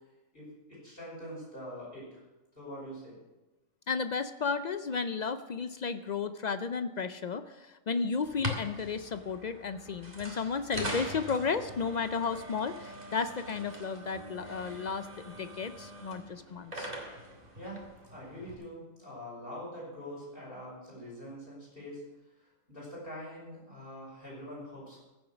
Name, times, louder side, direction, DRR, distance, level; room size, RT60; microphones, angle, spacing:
voice 1, 0.3-2.2 2.6-3.2 17.5-22.0 22.4-25.0, equal, 45° left, -5 dB, 5.9 m, -44 dB
voice 2, 3.9-16.9, left 5 dB, 65° left, 10 dB, 0.4 m, -33 dB
sound 1, 8.2-18.5, equal, 30° right, 2.2 m, -42 dB
15.5 x 7.2 x 6.0 m, 1.1 s
omnidirectional pair, 1.3 m